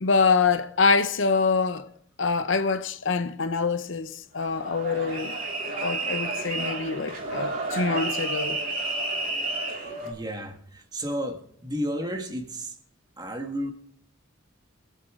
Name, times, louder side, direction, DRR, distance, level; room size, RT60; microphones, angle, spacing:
voice 1, 0.0-1.9 2.2-5.4 5.8-8.6, left 4 dB, 65° left, 0.7 m, -25 dB
sound 1, 4.4-10.1, right 2 dB, 40° right, 3.0 m, -31 dB
voice 2, 9.7-12.7 13.2-13.7, equal, 20° right, 1.5 m, -33 dB
24.0 x 8.2 x 3.6 m
head